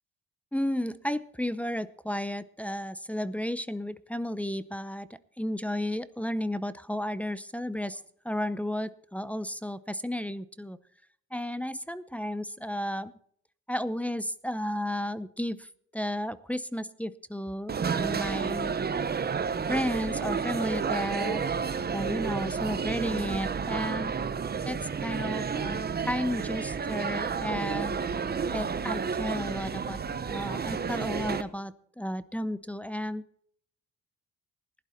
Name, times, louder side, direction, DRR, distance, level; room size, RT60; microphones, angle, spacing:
voice 1, 0.5-5.1 5.4-10.8 11.3-13.1 13.7-18.8 19.7-21.4 21.9-24.1 24.6-28.0 28.5-30.0 30.3-33.3, equal, 5° left, 13 dB, 0.6 m, -33 dB
sound 1, 17.7-31.4, right 6 dB, 30° right, 0.9 m, -31 dB
16.0 x 11.0 x 4.3 m, 0.62 s
cardioid pair, 90°, 30 cm